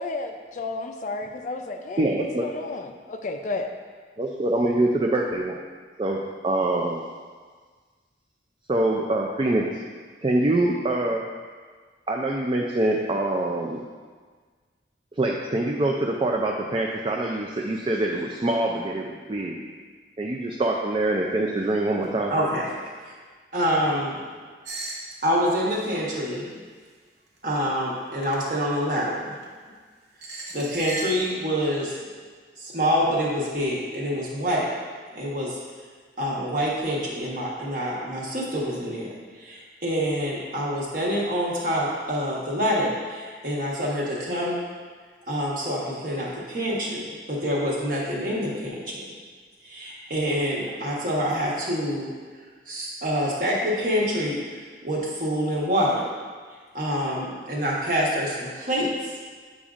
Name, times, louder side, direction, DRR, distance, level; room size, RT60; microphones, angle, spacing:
voice 1, 0.0-3.7, left 3 dB, 45° left, 5 dB, 0.4 m, -32 dB
voice 2, 2.0-2.5 4.2-5.6 6.0-7.0 8.7-9.8 10.2-11.3 12.1-13.8 15.1-19.6 20.2-22.3, right 2 dB, 30° right, 0 dB, 0.4 m, -24 dB
voice 3, 22.3-22.7 23.5-24.2 25.2-26.5 27.4-29.3 30.5-32.0 32.6-34.7 35.1-35.6 36.2-39.1 39.4-44.6 45.3-49.0 49.6-52.1 52.7-56.0 56.7-58.9, equal, 50° right, -4 dB, 1.2 m, -26 dB
sound 1, 24.6-25.1 25.6-25.9 27.4-27.6 28.2-28.4 29.3-29.5 30.2-31.3, right 2 dB, 65° right, 0.9 m, -36 dB
8.4 x 5.1 x 2.5 m, 1.6 s
head